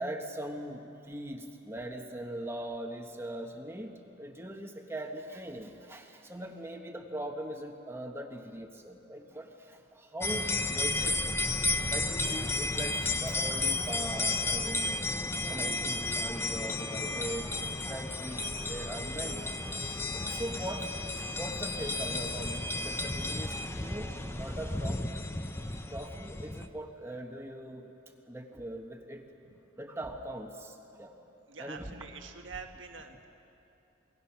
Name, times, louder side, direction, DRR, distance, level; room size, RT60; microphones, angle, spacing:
voice 1, 0.0-11.3 11.6-15.0 15.5-17.5 17.9-21.0 21.4-25.2 25.9-27.9 28.3-29.2 29.8-31.1 31.6-32.1, right 1 dB, 15° right, 3 dB, 1.2 m, -41 dB
sound 1, 10.2-26.7, left 2 dB, 15° left, 0.8 m, -33 dB
sound 2, 19.4-19.8 20.2-20.6 21.1-22.6, left 1 dB, 80° left, 4.9 m, -55 dB
voice 2, 31.5-33.3, right 5 dB, 85° right, 4 dB, 1.5 m, -45 dB
28.0 x 20.5 x 5.8 m, 2.8 s
head